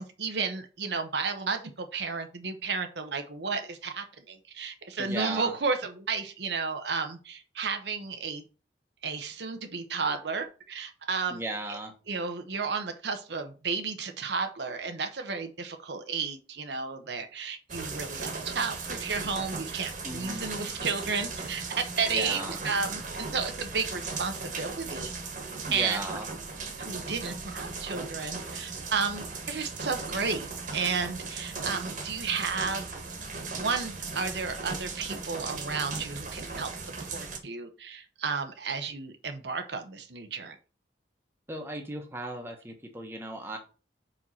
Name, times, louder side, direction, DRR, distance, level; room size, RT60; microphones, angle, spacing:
voice 1, 0.0-8.4 9.0-11.4 11.7-11.8 12.1-25.1 25.7-26.0 26.8-32.9 33.6-40.6, right 5 dB, 70° right, 6 dB, 0.9 m, -32 dB
voice 2, 5.0-5.5 11.3-11.9 20.0-20.5 22.1-22.6 25.7-26.3 41.5-43.6, right 1 dB, 15° right, 3 dB, 1.2 m, -36 dB
sound 1, 17.7-37.4, right 4 dB, 45° right, 1.6 m, -37 dB
5.0 x 4.6 x 5.6 m, 0.34 s
head